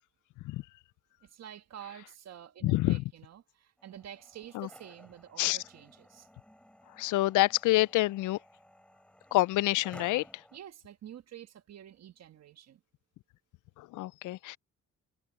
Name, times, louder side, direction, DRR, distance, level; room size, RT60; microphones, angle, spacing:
voice 1, 1.2-6.3 10.5-12.8, right 10 dB, 60° right, 1.5 m, -49 dB
voice 2, 2.6-3.0 4.5-4.7 5.4-5.6 7.0-8.4 9.3-10.2 13.8-14.6, left 18 dB, 80° left, 0.5 m, -27 dB
sound 1, 3.8-10.6, equal, 5° left, 4.9 m, -56 dB
cardioid pair, 90°, 30 cm